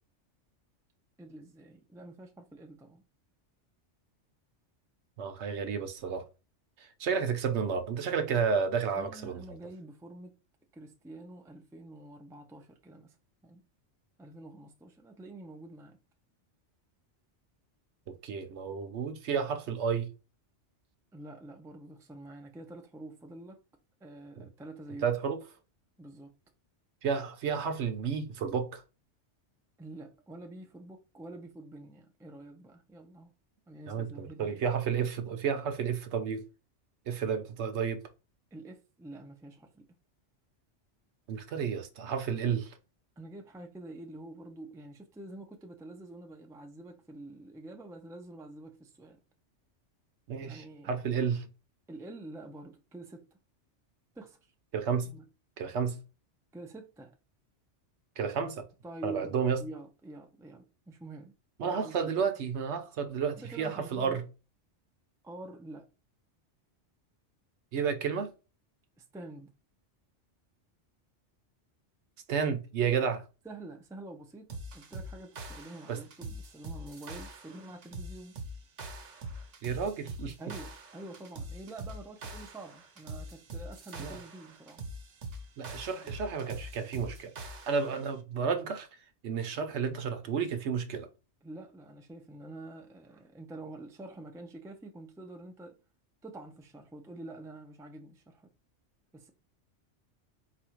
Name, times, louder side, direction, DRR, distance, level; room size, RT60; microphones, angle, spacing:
voice 1, 1.2-3.0 9.0-10.4 10.7-13.2 13.4-13.6 14.2-16.0 21.1-23.6 24.0-25.1 26.0-26.3 29.8-33.3 33.7-34.6 38.5-39.9 43.2-49.2 50.4-51.0 51.9-53.3 54.1-54.4 55.0-55.2 56.5-57.2 58.8-62.1 63.3-64.2 65.2-65.9 69.0-69.5 73.4-78.4 80.4-84.8 86.0-86.2 91.4-95.8 96.2-98.5 99.1-99.3, right 2 dB, 5° right, 0.3 m, -47 dB
voice 2, 5.2-6.3 6.8-9.4 18.1-20.1 25.0-25.4 27.0-28.8 33.9-36.4 37.1-38.0 41.3-42.8 50.3-51.5 54.7-55.1 55.6-56.0 58.2-58.6 59.0-59.6 61.6-64.2 67.7-68.3 72.3-73.2 75.9-76.0 79.6-80.3 84.0-84.2 85.6-87.3 87.7-88.9 89.2-91.1, right 6 dB, 75° right, 0.9 m, -31 dB
sound 1, 74.5-88.1, right 1 dB, 90° right, 1.2 m, -43 dB
4.3 x 2.5 x 4.4 m
omnidirectional pair, 1.2 m